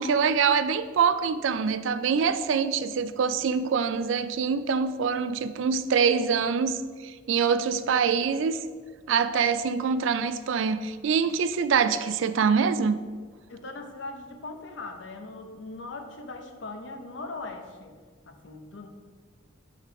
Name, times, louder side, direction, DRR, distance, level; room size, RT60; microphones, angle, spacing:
voice 1, 0.0-8.6 9.1-13.0, right 6 dB, 70° right, 12 dB, 0.3 m, -25 dB
voice 2, 13.5-18.0 18.3-18.9, left 3 dB, 65° left, 4 dB, 0.7 m, -40 dB
6.6 x 3.6 x 4.7 m, 1.5 s
head